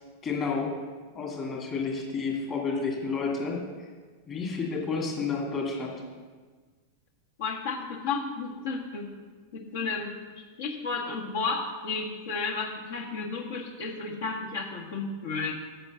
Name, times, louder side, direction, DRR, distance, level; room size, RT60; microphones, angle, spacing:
voice 1, 0.2-0.7 1.1-3.6 4.3-5.9, left 4 dB, 30° left, -1 dB, 2.3 m, -30 dB
voice 2, 7.4-9.1 9.5-10.1 10.6-15.5, left 4 dB, 55° left, 1 dB, 1.4 m, -32 dB
7.9 x 5.9 x 6.8 m, 1.5 s
figure-of-eight pair, 90°, 0 cm